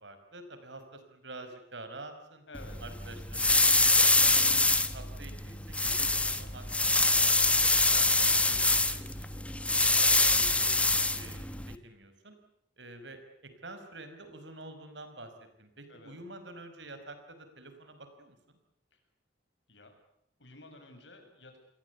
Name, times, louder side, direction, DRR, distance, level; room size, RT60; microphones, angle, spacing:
voice 1, 0.0-2.4 2.8-3.7 4.0-4.6 4.9-10.7 11.1-12.4 12.8-15.3 15.6-18.6, right 2 dB, 75° right, 8 dB, 5.5 m, -48 dB
voice 2, 2.5-2.8 15.9-16.2 18.9-19.0 19.7-19.9 20.4-21.6, left 2 dB, 75° left, 6 dB, 7.4 m, -51 dB
sound 1, 2.5-11.8, left 2 dB, 5° left, 1.2 m, -25 dB
29.5 x 22.0 x 8.3 m, 0.73 s
head